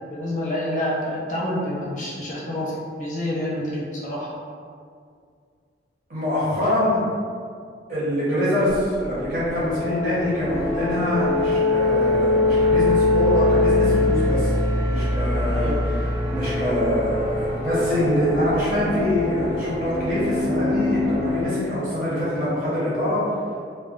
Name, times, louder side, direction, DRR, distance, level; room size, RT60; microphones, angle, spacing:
voice 1, 0.1-2.7 3.0-4.3 15.5-15.8, left 1 dB, 45° left, -5 dB, 0.5 m, -28 dB
voice 2, 6.1-7.0 7.9-14.5 14.9-23.2, left 1 dB, 50° right, -10 dB, 0.9 m, -24 dB
sound 1, 8.7-21.5, left 2 dB, 15° right, 0.4 m, -23 dB
2.3 x 2.2 x 2.4 m, 2.2 s
head